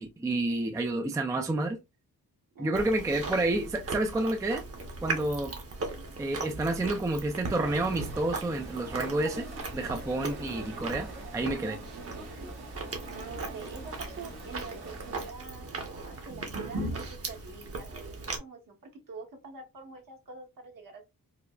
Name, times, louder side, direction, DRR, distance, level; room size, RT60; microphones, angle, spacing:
voice 1, 0.0-1.8 2.6-4.6 5.0-5.5 6.2-9.5 9.7-11.8, right 2 dB, 10° right, 0.4 m, -29 dB
voice 2, 2.5-3.4 11.5-12.5 13.1-18.8 19.1-21.1, right 4 dB, 60° right, 1.1 m, -46 dB
Chewing mastication, 2.8-18.4, right 3 dB, 40° right, 0.9 m, -38 dB
sound 1, 7.6-15.3, right 2 dB, 85° right, 1.7 m, -45 dB
4.7 x 2.0 x 2.3 m
wide cardioid pair, 160°, 37 cm